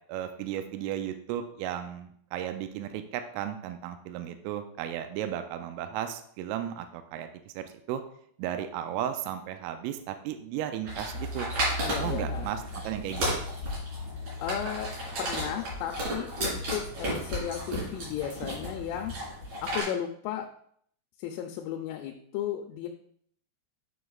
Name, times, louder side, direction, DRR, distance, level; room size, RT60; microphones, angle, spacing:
voice 1, 0.1-7.3 7.6-8.0 8.4-11.5 12.0-13.4, right 10 dB, 85° right, 7 dB, 3.1 m, -35 dB
sound 1, 10.9-19.8, equal, 40° right, 3.6 m, -33 dB
voice 2, 11.8-12.5 14.4-14.9 15.2-19.1 19.6-20.5 21.2-22.9, left 10 dB, 85° left, 2 dB, 3.0 m, -34 dB
9.6 x 5.2 x 2.3 m, 0.65 s
omnidirectional pair, 5.8 m